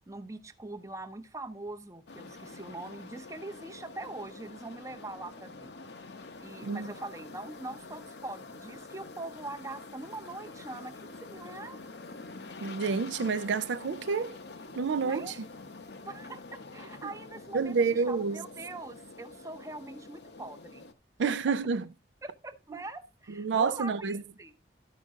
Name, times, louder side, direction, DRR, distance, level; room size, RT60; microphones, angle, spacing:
voice 1, 0.1-5.7 6.4-11.9 15.0-15.4 16.0-20.9 22.4-24.5, right 2 dB, 15° right, 0.7 m, -43 dB
sound 1, 2.1-20.9, left 3 dB, 65° left, 0.8 m, -47 dB
voice 2, 6.6-6.9 12.6-14.4 14.8-15.3 17.0-17.1 17.5-18.4 21.2-21.9 23.3-24.2, right 5 dB, 80° right, 0.4 m, -29 dB
12.0 x 5.2 x 3.6 m
head